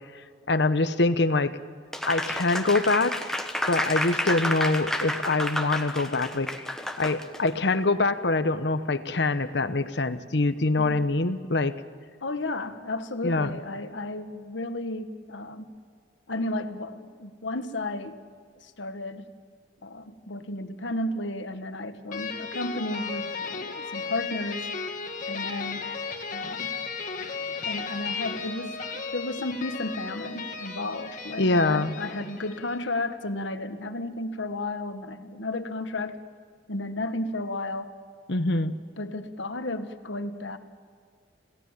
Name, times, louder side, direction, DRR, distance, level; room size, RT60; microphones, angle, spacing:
voice 1, 0.1-1.5 2.1-3.2 3.7-6.5 7.0-11.7 13.2-13.6 31.4-31.9 38.3-38.8, left 2 dB, 65° left, 12 dB, 1.0 m, -24 dB
Applause, 1.9-7.5, left 1 dB, 5° left, 1.3 m, -30 dB
voice 2, 12.2-15.7 16.3-18.2 18.6-19.3 19.8-24.7 25.3-25.9 26.3-26.7 27.4-36.2 36.7-37.9 39.0-40.6, left 2 dB, 80° left, 9 dB, 1.5 m, -33 dB
sound 1, 22.1-32.9, left 5 dB, 45° left, 2.1 m, -35 dB
27.5 x 17.5 x 7.4 m, 2.1 s
head